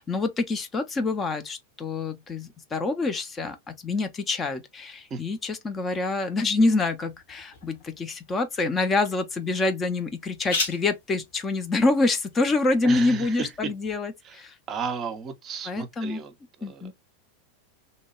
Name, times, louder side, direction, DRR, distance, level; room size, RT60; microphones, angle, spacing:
voice 1, 0.0-14.6 15.6-16.2 16.6-16.9, left 3 dB, 20° left, 0.5 m, -26 dB
sound 1, 6.5-14.0, left 4 dB, 60° left, 1.2 m, -39 dB
voice 2, 12.8-13.5 14.3-14.4 14.7-16.3 16.6-16.9, right 5 dB, 30° right, 0.6 m, -34 dB
2.8 x 2.2 x 2.8 m
figure-of-eight pair, 90°, 0 cm